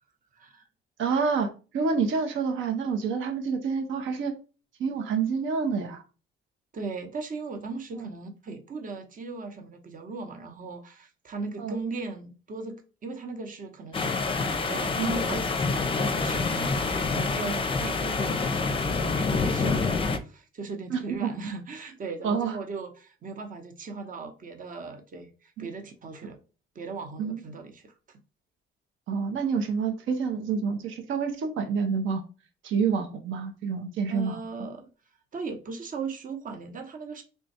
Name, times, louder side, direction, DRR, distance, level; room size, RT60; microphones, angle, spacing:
voice 1, 0.3-0.6 6.7-26.4 26.7-28.2 34.1-34.9 35.3-37.2, right 4 dB, 45° right, 0.8 m, -38 dB
voice 2, 1.0-1.5 1.7-4.3 4.8-6.0 7.9-8.1 11.6-11.8 15.0-15.1 17.5-17.6 20.9-21.3 22.2-22.6 25.6-25.7 27.2-27.4 29.1-32.2 32.6-34.3, right 5 dB, 80° right, 0.8 m, -28 dB
sound 1, 13.9-20.2, left 4 dB, 25° left, 0.5 m, -27 dB
3.4 x 2.2 x 4.1 m
cardioid pair, 90°, 20 cm